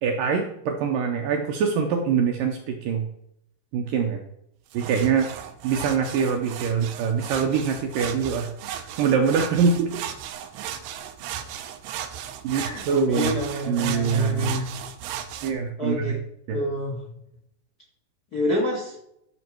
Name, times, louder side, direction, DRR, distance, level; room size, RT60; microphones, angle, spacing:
voice 1, 0.0-3.1 3.7-4.2 4.7-5.3 5.6-8.5 8.7-9.9 12.4-13.4 13.7-14.6 15.4-16.2 16.5-16.6, right 6 dB, 75° right, 3 dB, 2.1 m, -24 dB
sound 1, 4.7-15.5, right 9 dB, 90° right, 2.8 m, -36 dB
voice 2, 12.5-14.7 15.8-16.2 16.5-17.0 18.3-18.9, left 1 dB, 35° left, -2 dB, 1.5 m, -28 dB
12.5 x 6.4 x 4.6 m, 0.76 s
omnidirectional pair, 4.7 m